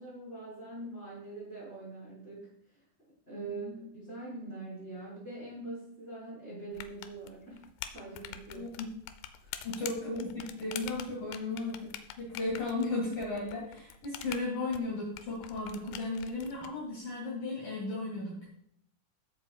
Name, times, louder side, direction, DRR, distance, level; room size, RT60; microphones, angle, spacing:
voice 1, 0.0-2.8 3.3-7.6 7.9-8.8 9.4-9.5, right 2 dB, 15° left, -9 dB, 3.9 m, -43 dB
voice 2, 3.3-3.9 8.5-8.9 9.6-18.5, left 2 dB, 55° left, -4 dB, 3.1 m, -35 dB
sound 1, 6.7-16.7, left 11 dB, 85° left, 2.6 m, -45 dB
16.0 x 7.5 x 2.4 m, 0.70 s
omnidirectional pair, 5.8 m